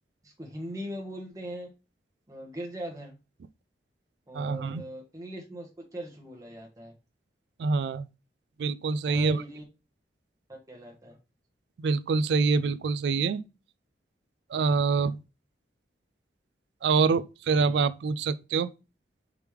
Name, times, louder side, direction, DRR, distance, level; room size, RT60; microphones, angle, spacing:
voice 1, 0.2-1.7 2.3-3.2 4.3-6.9 9.1-9.6 10.5-11.2, equal, 20° right, 0.9 m, -40 dB
voice 2, 4.3-4.8 7.6-8.1 8.6-9.4 11.8-13.4 14.5-15.2 16.8-18.7, right 4 dB, 75° right, 0.3 m, -25 dB
4.9 x 3.4 x 3.1 m
head